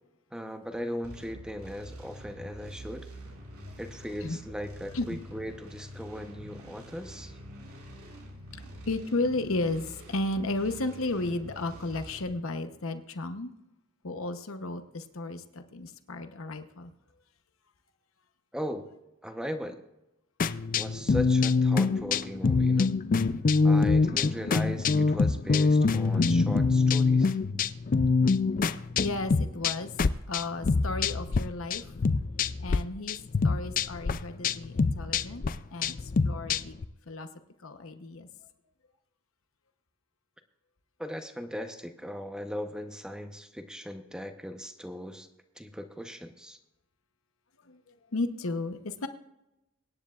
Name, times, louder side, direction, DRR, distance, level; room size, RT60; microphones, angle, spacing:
voice 1, 0.3-3.1 3.8-7.4 18.5-18.9 19.2-19.8 20.7-23.0 23.6-27.4 41.0-45.3 45.6-46.6, equal, 5° right, 6 dB, 0.9 m, -38 dB
sound 1, 1.0-12.2, equal, 85° right, 4.0 m, -46 dB
voice 2, 8.9-13.5 14.0-16.9 29.0-29.9 30.3-31.8 32.6-33.2 33.4-36.0 36.2-36.8 37.1-37.3 37.6-38.3 47.7-47.8 48.1-49.1, left 2 dB, 65° left, 8 dB, 0.9 m, -33 dB
sound 2, 20.4-31.4 31.7-32.8 33.1-36.8, left 4 dB, 40° left, 0.4 m, -25 dB
24.0 x 9.9 x 2.4 m, 0.94 s
head